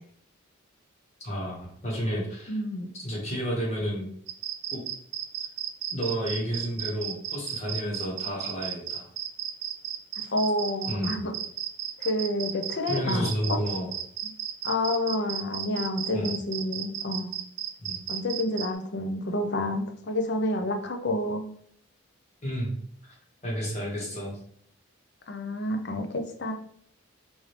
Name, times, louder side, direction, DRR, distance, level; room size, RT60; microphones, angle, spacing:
voice 1, 1.2-2.6 3.0-4.1 4.7-4.8 5.9-9.1 10.9-11.2 12.9-13.9 16.1-16.3 17.8-18.0 22.4-22.7 23.0-23.1 23.4-24.4, equal, 30° left, -4 dB, 1.4 m, -31 dB
voice 2, 2.5-2.9 8.3-8.4 10.3-11.3 12.0-13.6 14.6-17.3 18.1-21.4 25.3-26.5, left 1 dB, 55° left, 4 dB, 0.6 m, -29 dB
sound 1, 4.3-18.7, right 10 dB, 55° right, 0.4 m, -34 dB
4.9 x 2.7 x 3.2 m, 0.63 s
head